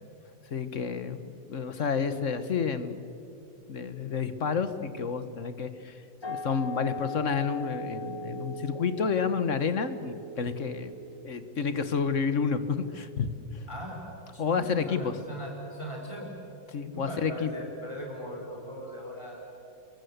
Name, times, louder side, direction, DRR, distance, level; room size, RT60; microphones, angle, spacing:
voice 1, 0.5-3.1 3.7-10.9 11.2-13.6 14.4-15.2 16.7-17.5, left 6 dB, 45° left, 11 dB, 1.4 m, -30 dB
sound 1, 6.2-11.6, equal, 25° left, 0.6 m, -39 dB
voice 2, 13.7-14.0 14.3-16.4 16.9-19.5, equal, 15° right, 0 dB, 3.2 m, -39 dB
29.0 x 22.5 x 8.0 m, 2.6 s
omnidirectional pair, 2.0 m